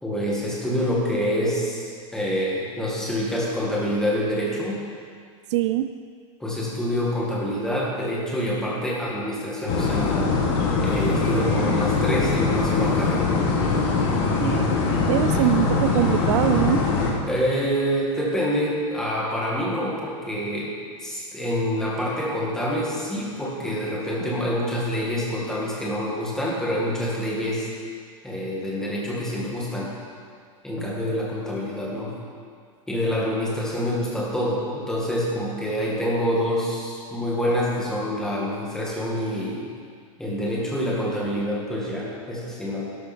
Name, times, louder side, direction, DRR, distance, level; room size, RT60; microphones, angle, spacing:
voice 1, 0.0-4.8 6.4-10.3 10.8-13.3 17.2-20.7 21.0-27.7 28.2-29.9 30.6-32.1 32.9-39.6 40.2-42.9, equal, 5° left, -5 dB, 2.1 m, -26 dB
voice 2, 5.5-5.9 14.4-14.7 15.1-16.8, right 13 dB, 55° right, 10 dB, 0.5 m, -23 dB
sound 1, 9.7-17.1, left 4 dB, 45° left, 1.8 m, -22 dB
12.0 x 12.0 x 4.5 m, 2.1 s
supercardioid pair, 165°, 18 cm